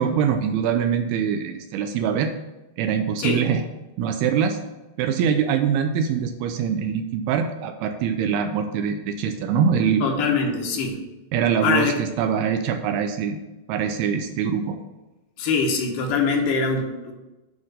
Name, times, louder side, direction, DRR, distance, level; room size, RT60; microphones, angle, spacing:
voice 1, 0.0-2.3 2.8-3.6 4.0-4.6 5.0-10.1 11.3-13.4 13.7-14.8, right 7 dB, 80° right, 6 dB, 2.4 m, -23 dB
voice 2, 10.0-11.0 11.6-12.0 15.4-17.1, left 4 dB, 75° left, 2 dB, 3.0 m, -23 dB
9.1 x 3.8 x 6.3 m, 1.1 s
omnidirectional pair, 4.8 m